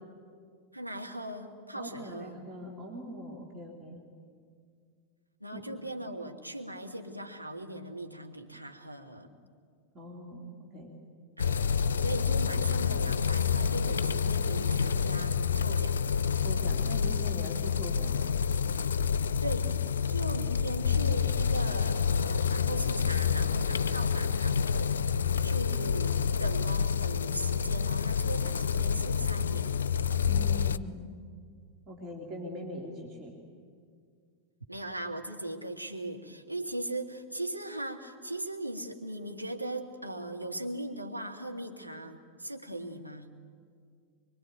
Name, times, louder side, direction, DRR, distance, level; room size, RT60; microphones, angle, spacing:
voice 1, 0.7-2.4 5.4-9.4 11.4-16.0 19.4-29.7 34.7-43.3, right 1 dB, 90° right, 2 dB, 2.0 m, -39 dB
voice 2, 1.7-4.0 5.5-5.6 9.9-10.5 10.7-11.0 16.4-18.3 30.3-31.1 31.9-33.3, equal, 30° right, 0 dB, 3.4 m, -42 dB
sound 1, 11.4-30.8, left 6 dB, 65° left, 0.6 m, -28 dB
24.0 x 23.5 x 9.3 m, 2.1 s
figure-of-eight pair, 90°, 0 cm